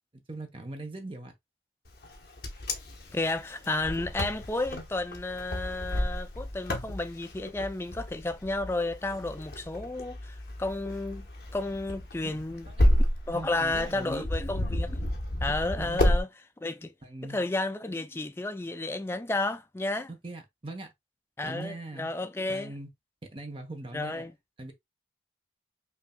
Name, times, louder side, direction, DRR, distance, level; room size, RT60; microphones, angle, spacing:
voice 1, 0.3-1.3 12.2-12.3 12.7-12.9 13.3-14.3 15.8-16.0 17.0-17.4 20.1-20.9 21.4-22.1 22.5-22.9 23.3-24.3 24.6-24.7, right 2 dB, 30° right, 0.8 m, -40 dB
Wind, 2.0-16.2, left 1 dB, 60° left, 1.0 m, -30 dB
voice 2, 3.1-11.3 11.5-12.7 13.3-15.1 15.4-16.3 16.6-16.9 17.2-20.1 21.4-22.7 23.9-24.3, left 2 dB, 15° left, 0.3 m, -32 dB
5.4 x 2.7 x 2.2 m
head